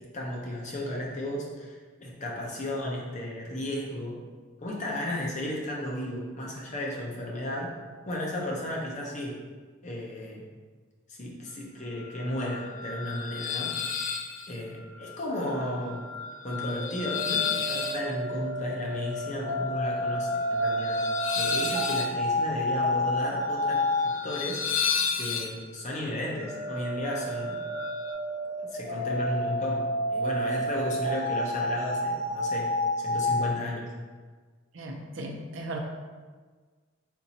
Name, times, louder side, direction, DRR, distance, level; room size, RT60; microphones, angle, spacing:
voice 1, 0.1-4.2 4.6-7.7 8.1-9.4 9.8-10.4 11.1-13.7 14.5-16.1 16.4-21.0 21.3-24.6 25.2-27.6 28.7-29.8 30.1-32.7 33.0-33.9, left 1 dB, 35° left, -2 dB, 0.8 m, -34 dB
sound 1, 11.9-28.1, left 6 dB, 80° left, 0.5 m, -34 dB
sound 2, 16.8-24.1 26.1-33.4, left 1 dB, 10° right, 0.8 m, -30 dB
voice 2, 34.7-35.8, right 1 dB, 70° right, 2 dB, 0.6 m, -37 dB
4.4 x 2.6 x 4.1 m, 1.5 s
head